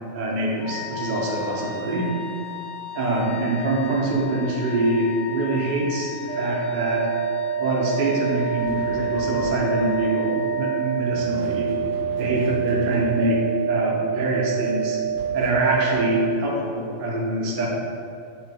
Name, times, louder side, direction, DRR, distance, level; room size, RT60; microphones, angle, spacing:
voice 1, 0.1-2.2 2.9-7.0 7.6-11.7 12.2-15.0 15.3-17.7, right 2 dB, 90° right, -2 dB, 0.4 m, -24 dB
Wind instrument woodwind instrument, 0.6-11.4, left 8 dB, 30° left, 0.7 m, -36 dB
sound 1, 6.3-16.3, right 8 dB, 50° right, 0.8 m, -27 dB
sound 2, 8.6-10.1 11.0-13.6 15.0-16.2, left 1 dB, 15° right, 0.4 m, -40 dB
3.1 x 2.4 x 3.3 m, 2.4 s
omnidirectional pair, 1.5 m